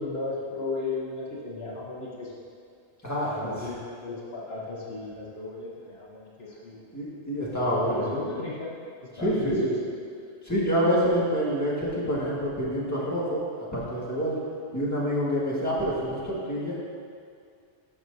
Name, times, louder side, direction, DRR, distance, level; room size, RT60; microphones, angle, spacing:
voice 1, 0.0-2.3 3.2-6.8 7.7-8.7 9.2-9.7, left 3 dB, 70° left, -5 dB, 1.3 m, -35 dB
voice 2, 3.0-3.7 6.9-8.0 9.1-9.8 10.4-14.4 14.7-16.8, equal, 15° left, -7 dB, 1.8 m, -27 dB
12.5 x 6.1 x 2.7 m, 2.3 s
omnidirectional pair, 1.1 m